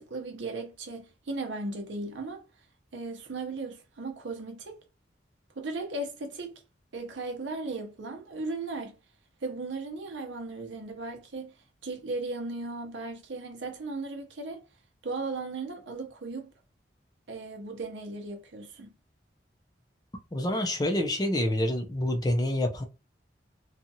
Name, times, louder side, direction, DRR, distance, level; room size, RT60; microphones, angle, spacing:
voice 1, 0.0-2.5 2.9-4.8 5.6-6.6 6.9-9.0 9.4-11.6 11.8-14.7 15.0-16.5 17.3-18.9, right 3 dB, 85° right, 0.7 m, -36 dB
voice 2, 20.3-22.8, left 1 dB, 20° left, 0.4 m, -27 dB
2.8 x 2.4 x 2.6 m
head